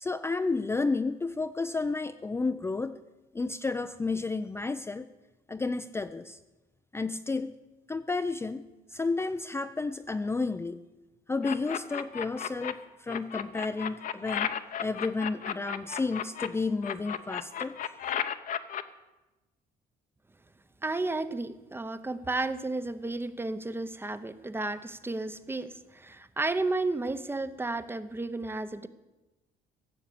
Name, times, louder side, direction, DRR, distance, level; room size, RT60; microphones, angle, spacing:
voice 1, 0.0-3.0 3.3-5.1 5.5-6.4 6.9-7.5 7.9-8.6 8.9-10.8 11.3-14.5 14.8-17.8, left 3 dB, 15° left, 8 dB, 0.5 m, -31 dB
sound 1, 11.4-12.7 13.1-16.5 16.8-18.8, left 9 dB, 50° left, 0.9 m, -33 dB
voice 2, 20.8-28.9, right 2 dB, 15° right, 12 dB, 0.8 m, -32 dB
16.0 x 7.2 x 8.5 m, 1.1 s
cardioid pair, 110°, 17 cm